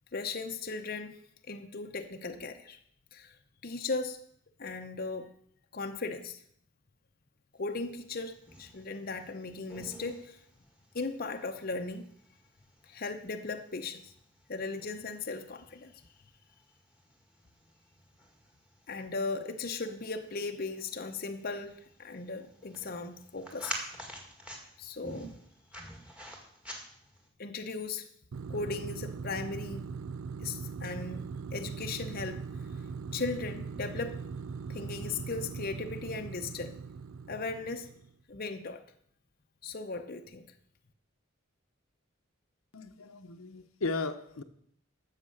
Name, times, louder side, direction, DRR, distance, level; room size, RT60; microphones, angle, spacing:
voice 1, 0.1-1.2 1.5-2.8 3.1-3.4 3.6-4.2 4.6-5.3 5.7-6.4 7.6-10.4 10.9-12.0 12.9-14.1 14.5-15.9 18.9-23.7 24.8-25.3 27.4-28.1 28.5-29.9 30.4-31.2 31.5-32.4 33.1-34.2 34.7-36.7 37.3-37.9 38.3-38.8 39.6-40.4, left 3 dB, 45° left, 5 dB, 0.8 m, -37 dB
sound 1, 7.9-27.3, equal, 5° right, 1.9 m, -49 dB
sound 2, 28.3-38.1, right 5 dB, 80° right, 0.5 m, -40 dB
voice 2, 42.7-44.4, left 3 dB, 85° left, 8 dB, 0.9 m, -36 dB
13.0 x 7.5 x 6.5 m, 0.66 s
head